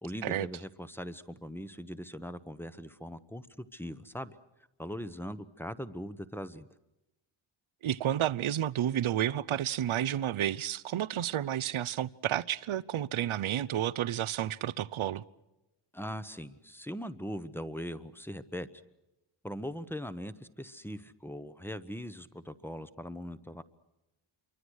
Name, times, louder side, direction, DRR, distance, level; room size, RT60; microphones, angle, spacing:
voice 1, 0.0-4.3 4.8-6.7 15.9-18.7 19.4-23.6, equal, 5° left, 1.1 m, -40 dB
voice 2, 7.8-15.2, right 11 dB, 75° right, 0.8 m, -31 dB
27.5 x 24.0 x 6.4 m
wide cardioid pair, 120°, 49 cm